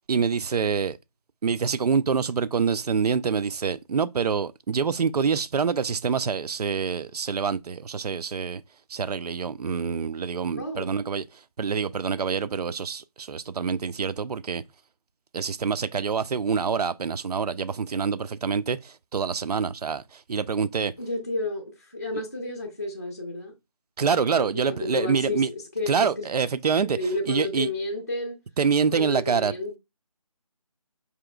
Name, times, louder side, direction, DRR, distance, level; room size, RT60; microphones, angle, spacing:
voice 1, 0.1-1.0 1.4-8.6 8.9-11.2 11.6-14.6 15.3-20.9 24.0-25.5 25.9-27.0 27.3-27.7 28.6-29.5, right 6 dB, 85° right, 0.4 m, -26 dB
voice 2, 10.6-10.9 21.0-23.5 24.3-26.3 26.8-28.4 28.9-29.8, left 2 dB, 25° left, 0.5 m, -31 dB
4.9 x 2.9 x 2.3 m
figure-of-eight pair, 175°, 19 cm